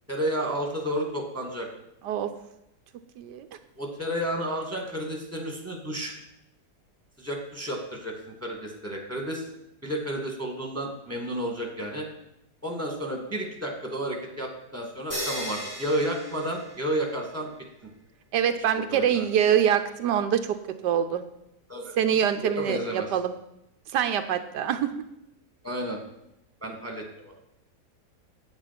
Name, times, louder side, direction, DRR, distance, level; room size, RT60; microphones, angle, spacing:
voice 1, 0.1-1.7 3.8-6.2 7.2-9.5 9.8-12.1 12.6-17.5 18.7-19.3 21.7-21.9 22.4-23.1 25.6-26.0 26.6-27.3, equal, 10° right, 1 dB, 2.0 m, -31 dB
voice 2, 3.2-3.5 18.3-20.6 20.8-21.2 22.0-23.3 23.9-24.9, right 9 dB, 85° right, 8 dB, 1.3 m, -24 dB
sound 1, 15.1-17.2, equal, 20° left, 4.2 m, -36 dB
8.8 x 8.7 x 5.9 m, 0.83 s
omnidirectional pair, 1.8 m